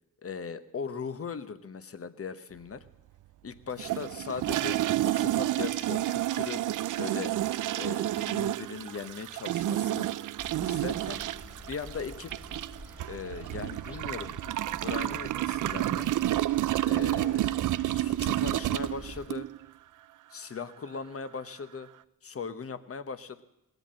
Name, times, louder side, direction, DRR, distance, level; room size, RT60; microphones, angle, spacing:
voice 1, 0.2-2.8 3.4-6.6 7.0-7.3 7.8-10.1 10.6-11.2 11.7-12.3 13.1-14.3 14.8-16.1 16.9-17.5 17.8-19.5 20.3-21.9 22.2-23.4, left 5 dB, 45° left, 13 dB, 1.0 m, -39 dB
sound 1, 3.8-19.6, right 14 dB, 65° right, 0.4 m, -30 dB
sound 2, 10.4-19.3, left 1 dB, 5° right, 1.5 m, -47 dB
18.0 x 8.1 x 7.5 m, 0.92 s
cardioid pair, 60°, 34 cm